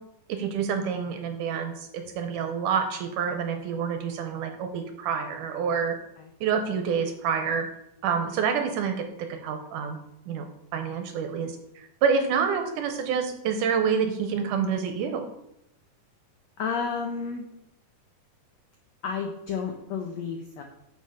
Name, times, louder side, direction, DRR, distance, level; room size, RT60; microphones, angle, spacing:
voice 1, 0.3-6.0 6.4-7.7 8.0-10.0 10.3-10.5 10.7-15.2, right 6 dB, 75° right, 6 dB, 2.1 m, -27 dB
voice 2, 16.6-17.4 19.0-20.6, left 6 dB, 80° left, 3 dB, 1.5 m, -31 dB
6.9 x 6.4 x 5.5 m, 0.81 s
omnidirectional pair, 4.1 m